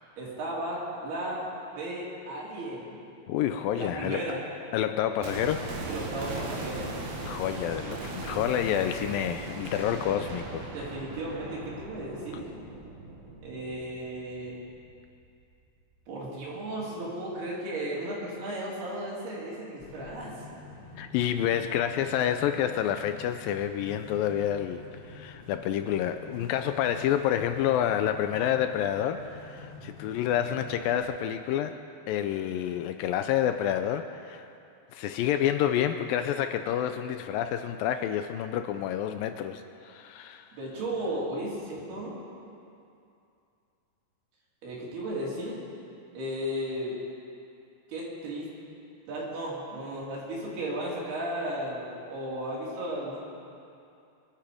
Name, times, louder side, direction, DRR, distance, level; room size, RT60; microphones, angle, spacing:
voice 1, 0.2-1.5 1.8-3.0 3.8-4.4 5.9-6.9 10.7-12.5 13.4-14.6 16.1-20.4 40.5-42.2 44.6-45.6 46.1-47.0 47.9-48.5 49.1-53.2, right 1 dB, 90° right, -5 dB, 5.2 m, -35 dB
voice 2, 3.3-4.2 4.7-5.7 7.2-10.7 21.0-31.8 32.1-34.5 34.9-40.5, left 10 dB, 80° left, 8 dB, 2.2 m, -28 dB
sound 1, 5.2-15.2 15.5-15.6, right 3 dB, 70° right, 3.7 m, -39 dB
sound 2, 19.8-31.0, left 4 dB, 35° left, 2.8 m, -47 dB
23.0 x 12.0 x 5.0 m, 2.6 s
omnidirectional pair, 4.4 m